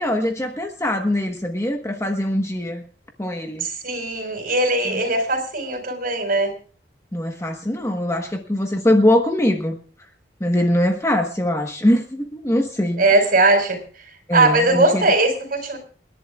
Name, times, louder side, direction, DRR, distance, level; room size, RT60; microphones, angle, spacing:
voice 1, 0.0-2.8 3.2-3.6 4.9-5.0 7.1-9.8 10.4-13.0 14.3-15.1, left 1 dB, 15° left, 3 dB, 1.2 m, -22 dB
voice 2, 3.6-6.5 13.0-13.8 14.3-15.8, right 2 dB, 50° right, 5 dB, 4.7 m, -19 dB
29.0 x 11.0 x 2.4 m, 0.39 s
head